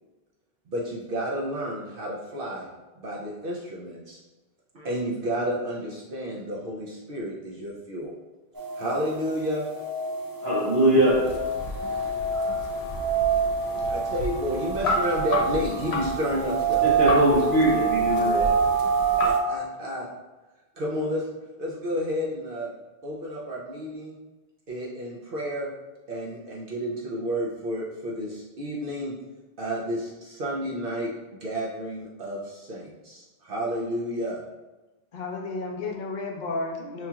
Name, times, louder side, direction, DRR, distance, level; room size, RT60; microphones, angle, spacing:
voice 1, 0.7-2.7 3.0-4.2 4.7-8.1 8.7-9.7 13.9-16.9 19.2-20.1 20.7-21.3 21.6-22.7 23.0-24.2 24.7-25.7 26.1-29.1 29.6-34.4, equal, 65° right, -4 dB, 0.8 m, -31 dB
sound 1, 8.6-19.4, right 5 dB, 35° right, 0.3 m, -26 dB
voice 2, 10.4-11.2 16.8-18.5, right 1 dB, 80° right, -8 dB, 1.5 m, -21 dB
sound 2, 11.1-19.3, left 2 dB, 90° left, 0.8 m, -33 dB
voice 3, 35.1-37.1, left 3 dB, 55° left, 1 dB, 0.7 m, -32 dB
5.5 x 2.8 x 2.3 m, 1.1 s
omnidirectional pair, 1.0 m